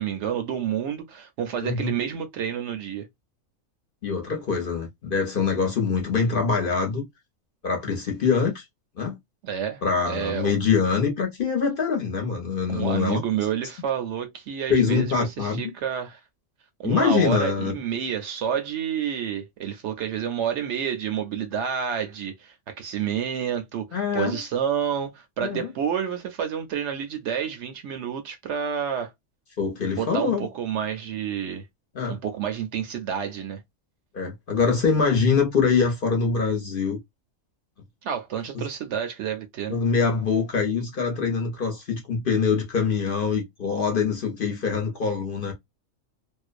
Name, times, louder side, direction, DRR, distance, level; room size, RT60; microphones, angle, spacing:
voice 1, 0.0-3.1 9.4-10.5 12.7-16.2 16.8-29.1 29.9-31.6 32.1-33.6 38.0-39.8, right 8 dB, 65° right, 0.8 m, -29 dB
voice 2, 1.6-1.9 4.0-7.1 7.6-8.6 9.0-9.2 9.8-13.2 14.7-15.7 16.8-17.8 23.9-24.4 25.4-25.7 29.6-30.5 31.9-32.2 34.1-37.0 38.5-38.7 39.7-45.5, left 5 dB, 50° left, 0.8 m, -24 dB
2.5 x 2.1 x 2.4 m
omnidirectional pair, 1.4 m